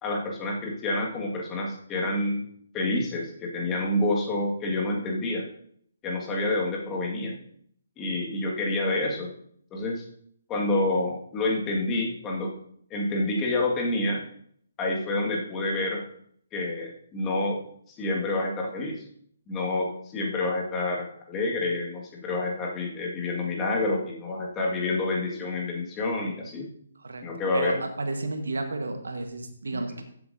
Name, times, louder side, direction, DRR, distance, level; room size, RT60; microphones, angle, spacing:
voice 1, 0.0-2.4 2.7-5.4 6.0-7.3 8.0-9.3 9.7-10.0 10.5-12.5 12.9-14.2 14.8-16.0 16.5-17.6 18.0-19.0 19.5-26.7 27.2-27.8 29.7-29.8, left 2 dB, 20° left, -2 dB, 2.0 m, -28 dB
voice 2, 27.5-30.0, right 2 dB, 70° right, 6 dB, 1.5 m, -32 dB
14.5 x 8.0 x 2.8 m, 0.65 s
figure-of-eight pair, 135°, 0 cm